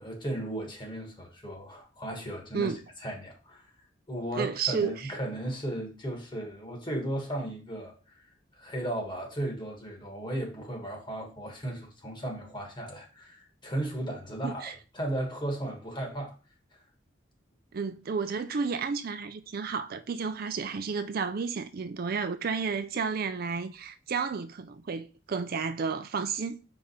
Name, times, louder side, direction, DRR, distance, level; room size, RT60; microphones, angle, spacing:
voice 1, 0.0-2.7 3.0-3.7 4.1-8.3 8.5-16.3 16.7-16.8, right 1 dB, 25° left, 1.6 m, -35 dB
voice 2, 4.3-5.1 14.4-14.8 17.7-26.6, right 5 dB, 50° right, 0.4 m, -32 dB
4.9 x 3.7 x 5.5 m
head